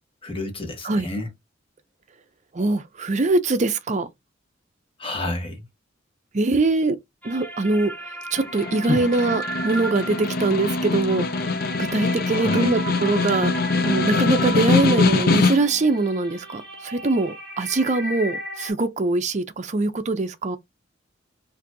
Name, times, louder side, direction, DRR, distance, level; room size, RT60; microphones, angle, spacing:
voice 1, 0.2-1.3 5.0-5.6 8.9-9.1 12.3-12.7, left 2 dB, 30° left, 1.2 m, -29 dB
voice 2, 2.5-4.1 6.3-7.0 7.2-7.9 8.3-11.2 11.9-13.5 13.8-20.6, right 3 dB, 35° right, 0.5 m, -22 dB
sound 1, 7.2-18.7, right 1 dB, 5° left, 1.2 m, -35 dB
Snare drum, 8.4-15.9, left 4 dB, 50° left, 0.5 m, -23 dB
4.2 x 2.6 x 2.6 m
head